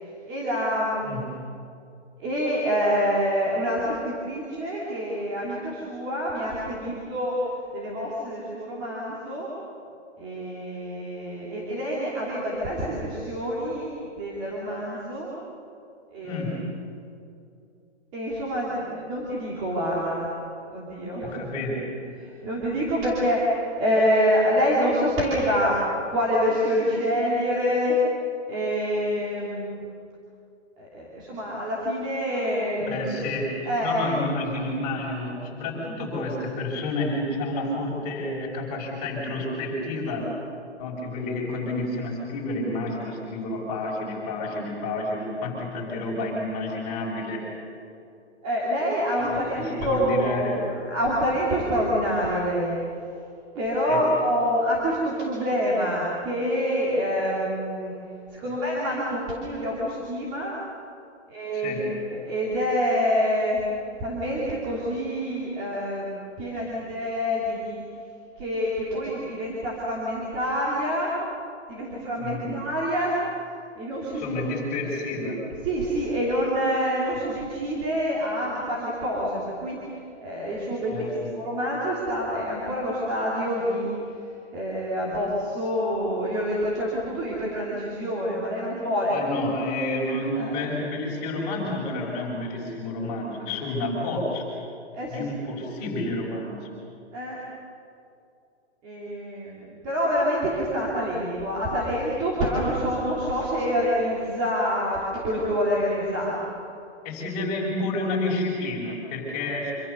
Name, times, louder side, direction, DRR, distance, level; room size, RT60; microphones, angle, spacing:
voice 1, 0.0-1.2 2.2-7.3 7.7-9.5 10.2-13.9 14.2-15.3 16.1-16.8 18.1-20.3 20.7-21.8 22.2-27.9 28.5-29.9 30.8-33.1 33.7-34.1 48.4-52.8 53.5-57.9 58.3-60.6 61.3-63.6 64.0-67.8 68.4-71.2 71.7-73.2 73.7-74.3 75.6-79.8 80.2-84.3 84.5-89.1 90.3-90.7 94.9-95.3 97.1-97.4 98.8-106.4, equal, 15° right, -6 dB, 2.8 m, -27 dB
voice 2, 16.2-16.7 21.2-21.9 32.8-40.3 40.8-47.5 49.5-50.6 53.9-54.1 61.5-61.9 72.2-72.6 74.1-75.4 80.9-81.3 89.1-94.5 95.1-96.7 107.0-109.7, left 2 dB, 20° left, -3 dB, 5.6 m, -30 dB
26.5 x 25.5 x 6.8 m, 2.6 s
hypercardioid pair, 175°, 35 cm